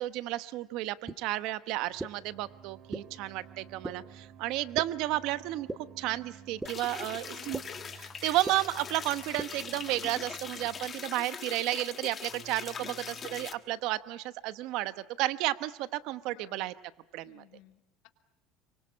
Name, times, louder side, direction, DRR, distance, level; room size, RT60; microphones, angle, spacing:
voice 1, 0.0-5.7 6.0-7.6 8.2-12.9 13.3-16.7 17.1-17.4, right 16 dB, 65° right, 14 dB, 1.0 m, -32 dB
sound 1, 1.1-1.2 2.0-2.1 2.9-3.0 3.8-3.9 4.8-4.9 5.7-5.8 6.6-6.7 7.5-7.6 8.4-8.5 9.4-9.5, right 2 dB, 10° right, 1.1 m, -34 dB
sound 2, 1.8-13.5, right 7 dB, 45° right, 2.1 m, -54 dB
voice 2, 6.7-7.6 12.7-13.2 16.3-16.7 17.2-18.1, left 15 dB, 70° left, 5 dB, 2.9 m, -57 dB
sound 3, 6.7-13.5, left 6 dB, 25° left, 1.4 m, -42 dB
25.5 x 24.0 x 8.6 m, 0.80 s
cardioid pair, 150°, 0 cm